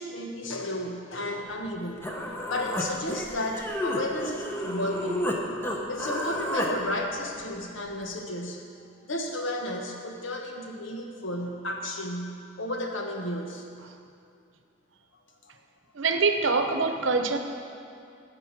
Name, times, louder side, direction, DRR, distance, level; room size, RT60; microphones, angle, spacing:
voice 1, 0.0-2.1 2.5-5.5 5.9-8.7 9.0-13.6 15.4-15.5, left 1 dB, 80° left, 2 dB, 1.3 m, -33 dB
Human voice, 1.7-1.8 2.0-5.4 5.6-6.7, left 1 dB, 10° left, 0.9 m, -31 dB
voice 2, 15.9-17.4, right 4 dB, 75° right, 7 dB, 0.8 m, -24 dB
15.0 x 5.1 x 6.0 m, 2.5 s
head